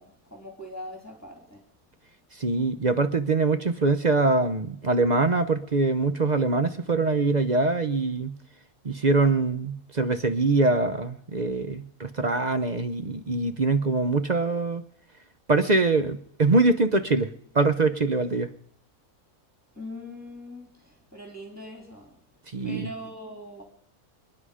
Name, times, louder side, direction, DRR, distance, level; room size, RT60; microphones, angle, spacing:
voice 1, 0.0-1.6 19.8-22.2 22.6-23.6, left 1 dB, 10° left, 1 dB, 2.9 m, -41 dB
voice 2, 2.3-8.3 8.8-14.8 15.5-17.3 17.5-18.5 22.5-22.9, right 3 dB, 40° right, 10 dB, 0.7 m, -23 dB
27.0 x 9.8 x 4.9 m, 0.66 s
omnidirectional pair, 1.5 m